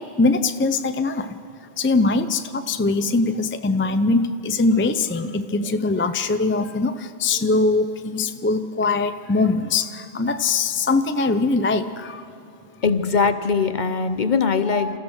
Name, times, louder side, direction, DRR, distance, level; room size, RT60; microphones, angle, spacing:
voice 1, 0.0-1.4 1.8-12.3 12.7-12.8, left 3 dB, 15° left, 9 dB, 0.5 m, -22 dB
voice 2, 12.8-15.0, left 5 dB, 45° left, 10 dB, 0.9 m, -21 dB
28.0 x 14.5 x 6.4 m, 2.7 s
omnidirectional pair, 1.1 m